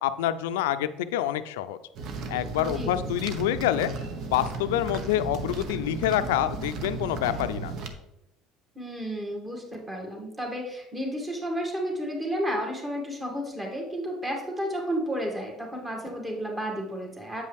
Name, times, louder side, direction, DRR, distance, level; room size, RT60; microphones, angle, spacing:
voice 1, 0.0-1.8 2.3-3.9 4.3-7.7, left 12 dB, 85° left, 12 dB, 0.4 m, -27 dB
sound 1, 1.9-7.9, right 3 dB, 60° right, 0.9 m, -34 dB
voice 2, 2.6-2.9 8.8-17.4, equal, 20° right, 0 dB, 2.2 m, -32 dB
8.3 x 5.4 x 3.4 m, 0.86 s
supercardioid pair, 80°, 0 cm